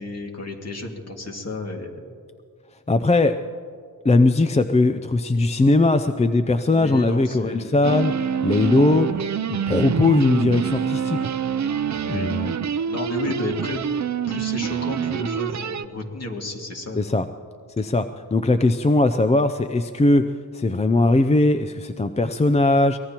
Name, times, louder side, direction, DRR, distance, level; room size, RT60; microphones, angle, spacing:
voice 1, 0.0-2.1 6.7-7.8 12.0-12.3 12.9-13.8 14.3-17.2, left 2 dB, 45° left, 1 dB, 2.2 m, -32 dB
voice 2, 2.9-3.4 4.0-8.1 8.4-9.1 9.5-11.2 12.1-12.5 17.0-17.3 17.8-18.1 18.3-20.3 20.5-23.0, left 2 dB, 20° left, 9 dB, 0.4 m, -19 dB
sound 1, 7.8-15.9, right 7 dB, 55° right, 0.5 m, -26 dB
24.0 x 19.0 x 3.0 m, 2.1 s
wide cardioid pair, 90°, 34 cm